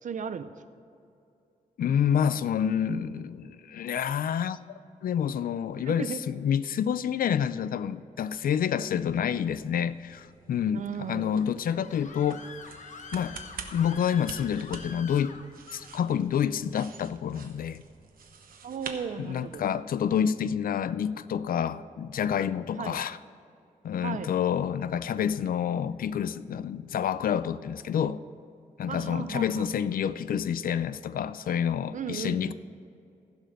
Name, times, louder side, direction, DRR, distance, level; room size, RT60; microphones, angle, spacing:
voice 1, 0.0-0.5 5.8-6.2 10.7-11.4 18.6-19.7 22.8-23.0 24.0-24.3 28.9-29.7 31.9-32.5, right 7 dB, 60° right, 11 dB, 0.6 m, -35 dB
voice 2, 1.8-4.6 5.0-12.4 13.1-13.4 13.7-15.4 15.7-17.8 19.2-23.2 23.8-28.2 28.8-32.5, left 8 dB, 80° left, 16 dB, 0.4 m, -28 dB
sound 1, 9.1-19.8, right 5 dB, 85° right, 1.0 m, -47 dB
Screaming, 11.3-15.9, left 5 dB, 60° left, 0.8 m, -46 dB
15.5 x 5.3 x 6.4 m, 2.6 s
wide cardioid pair, 145°, 14 cm